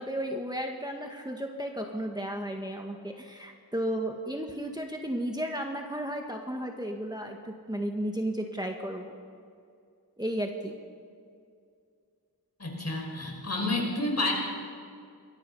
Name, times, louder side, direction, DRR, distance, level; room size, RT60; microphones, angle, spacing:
voice 1, 0.0-9.1 10.2-10.7, right 1 dB, 10° right, 2 dB, 1.8 m, -34 dB
voice 2, 12.6-14.3, left 2 dB, 45° left, 0 dB, 5.8 m, -30 dB
27.5 x 22.0 x 5.6 m, 2.4 s
wide cardioid pair, 85°, 37 cm